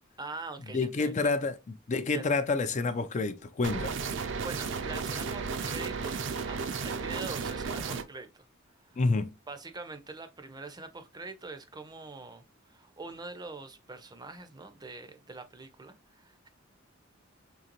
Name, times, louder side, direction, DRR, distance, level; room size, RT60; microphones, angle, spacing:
voice 1, 0.2-1.3 2.1-2.3 4.4-6.2 6.4-6.6 6.8-8.3 8.8-9.0 9.5-16.5, right 3 dB, 20° right, 0.5 m, -43 dB
voice 2, 0.7-1.6 1.9-4.0 9.0-9.3, left 3 dB, 35° left, 0.4 m, -28 dB
sound 1, 3.6-8.0, right 5 dB, 65° right, 0.5 m, -34 dB
3.8 x 3.2 x 2.9 m
head